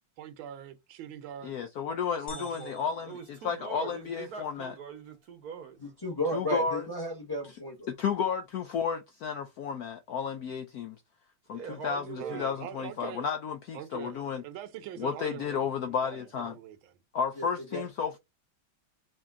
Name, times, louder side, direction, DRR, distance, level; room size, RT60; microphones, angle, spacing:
voice 1, 0.2-1.5 2.3-2.8 12.2-13.3 13.7-15.7 16.0-16.9, right 10 dB, 80° right, 1.4 m, -43 dB
voice 2, 1.4-3.1 3.4-4.7 6.3-6.9 7.9-11.0 11.5-14.4 15.0-16.6 17.1-18.2, left 6 dB, 75° left, 0.8 m, -32 dB
sound 1, 2.3-4.2, left 1 dB, 35° left, 1.7 m, -49 dB
voice 3, 3.0-5.8 11.5-12.5, right 6 dB, 60° right, 1.1 m, -42 dB
voice 4, 6.0-7.9 17.4-17.8, equal, 15° left, 1.0 m, -33 dB
5.0 x 2.8 x 3.6 m
omnidirectional pair, 2.2 m